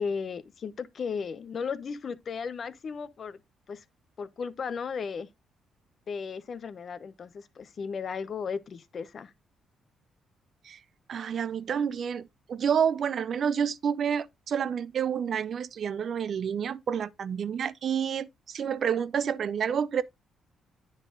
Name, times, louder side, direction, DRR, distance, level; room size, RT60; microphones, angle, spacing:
voice 1, 0.0-3.4 3.7-3.8 4.2-5.3 6.1-9.3, left 5 dB, 50° left, 0.8 m, -35 dB
voice 2, 11.1-20.0, right 7 dB, 55° right, 0.6 m, -29 dB
9.8 x 4.0 x 3.7 m
cardioid pair, 90°, 0 cm